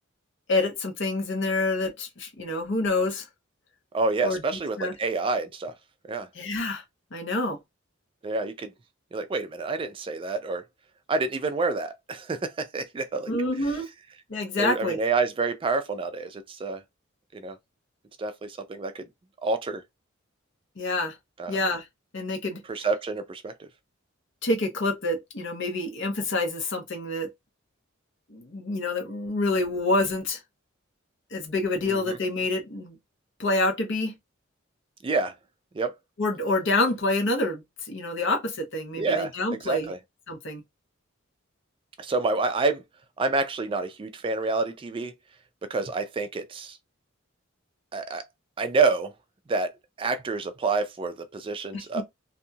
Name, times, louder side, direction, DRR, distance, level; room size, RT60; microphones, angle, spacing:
voice 1, 0.5-3.3 4.2-4.4 4.8-4.9 6.3-6.8 7.1-7.6 13.3-13.8 14.3-15.0 20.8-21.2 21.5-21.9 22.1-22.6 24.4-27.3 28.3-30.4 31.3-33.0 33.4-34.2 36.2-39.9 40.3-40.6 51.7-52.0, left 2 dB, 65° left, 0.9 m, -27 dB
voice 2, 3.9-5.7 6.1-6.3 8.2-8.7 9.1-10.6 11.1-13.3 14.6-16.8 17.3-17.6 18.2-19.1 19.4-19.8 21.4-21.6 22.7-23.7 31.9-32.2 35.0-35.3 35.7-35.9 39.0-39.3 39.6-40.0 42.0-42.8 43.2-45.1 45.7-46.8 47.9-48.3 48.6-49.1 49.5-49.7 50.0-52.0, right 3 dB, 25° right, 0.3 m, -28 dB
2.6 x 2.3 x 2.7 m
head